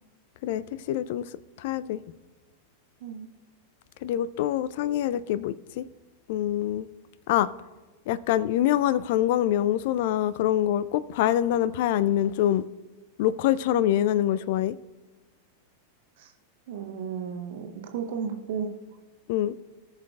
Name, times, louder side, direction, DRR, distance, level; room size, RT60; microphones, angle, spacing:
voice 1, 0.4-1.3 1.6-2.0 4.0-5.9 6.3-6.9 7.3-7.5 8.1-12.7 13.2-14.8 19.3-19.5, left 12 dB, 50° left, 0.3 m, -25 dB
voice 2, 16.7-18.7, right 6 dB, 55° right, 1.2 m, -34 dB
18.5 x 6.4 x 2.4 m
figure-of-eight pair, 90°, 0 cm